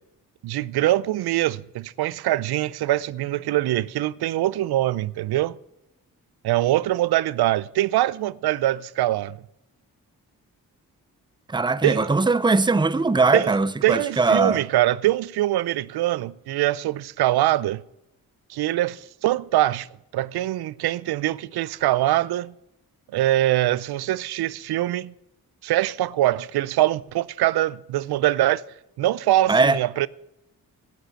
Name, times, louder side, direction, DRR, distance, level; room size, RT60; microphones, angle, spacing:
voice 1, 0.4-5.6 6.4-9.4 11.8-12.1 13.3-13.6 13.8-17.8 18.5-19.9 20.1-22.5 23.1-25.1 25.6-28.6 29.0-30.1, right 15 dB, 75° right, 0.5 m, -23 dB
voice 2, 11.5-14.6 29.5-29.8, right 3 dB, 10° right, 0.6 m, -20 dB
11.5 x 8.9 x 5.8 m
supercardioid pair, 50°, 39 cm